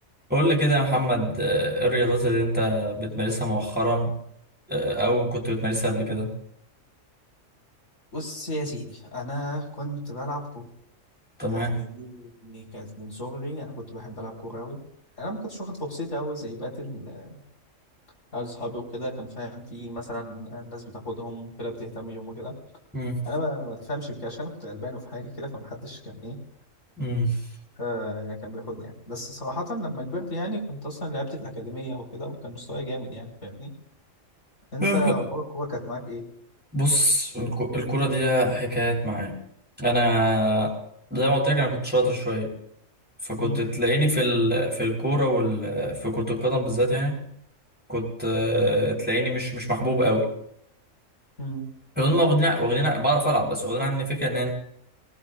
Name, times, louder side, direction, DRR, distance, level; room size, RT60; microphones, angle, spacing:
voice 1, 0.3-4.1 4.7-6.3 11.4-11.8 22.9-23.2 27.0-27.4 34.8-35.2 36.7-39.4 39.8-40.7 41.1-42.5 43.2-47.2 47.9-50.3 52.0-54.5, equal, 5° right, -1 dB, 4.5 m, -24 dB
voice 2, 8.1-10.7 11.4-14.8 15.2-17.4 18.3-22.5 23.2-26.4 27.8-33.7 34.7-36.3 43.4-43.6 51.4-51.6, equal, 75° left, -2 dB, 4.9 m, -34 dB
24.0 x 20.0 x 2.6 m, 0.72 s
omnidirectional pair, 1.3 m